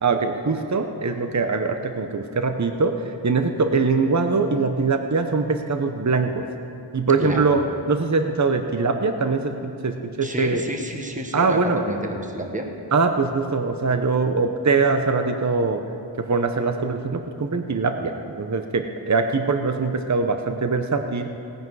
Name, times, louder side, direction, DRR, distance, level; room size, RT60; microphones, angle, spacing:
voice 1, 0.0-6.5 6.9-10.6 11.3-11.8 12.9-15.8 16.2-21.3, right 4 dB, 35° right, 6 dB, 0.8 m, -22 dB
voice 2, 7.2-7.5 10.2-12.7, right 1 dB, 15° right, 2 dB, 1.4 m, -30 dB
18.0 x 10.5 x 4.8 m, 2.6 s
wide cardioid pair, 45°, 47 cm